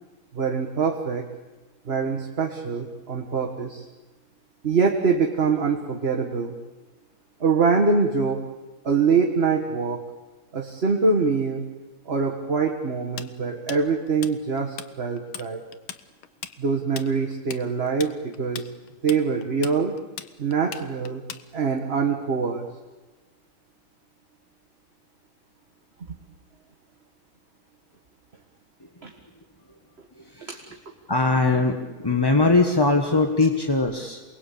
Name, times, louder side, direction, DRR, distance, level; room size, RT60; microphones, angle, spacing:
voice 1, 0.3-1.3 1.9-3.9 4.6-6.5 7.4-8.4 8.8-10.0 10.5-11.7 12.1-15.6 16.6-18.7 19.0-19.9 20.4-21.2 21.5-22.7 29.0-29.1 30.5-30.6, right 5 dB, 30° right, 2 dB, 1.8 m, -24 dB
Tools, 13.2-14.9 15.2-15.5 15.7-21.8, left 9 dB, 85° left, 1.9 m, -38 dB
voice 2, 30.2-30.6 31.1-34.2, left 3 dB, 15° left, 4 dB, 1.1 m, -21 dB
28.0 x 21.0 x 8.6 m, 1.2 s
omnidirectional pair, 2.2 m